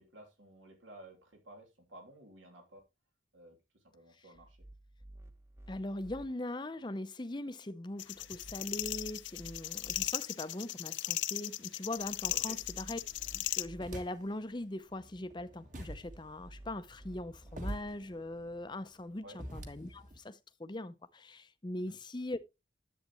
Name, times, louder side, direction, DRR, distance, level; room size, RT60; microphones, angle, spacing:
voice 1, 0.0-2.8 3.3-4.7 12.3-12.6 19.2-19.4 21.8-22.0, right 1 dB, 85° right, 3.1 m, -54 dB
sound 1, 4.3-6.3 8.1-10.1 12.0-13.9 15.8-17.7, right 1 dB, 15° right, 0.9 m, -53 dB
voice 2, 5.7-13.0 13.3-22.4, left 1 dB, 25° left, 0.6 m, -41 dB
sound 2, 8.0-13.7, left 15 dB, 75° left, 0.5 m, -36 dB
sound 3, 12.9-14.5 14.9-20.2, right 1 dB, 40° right, 1.6 m, -47 dB
10.5 x 8.1 x 3.0 m
head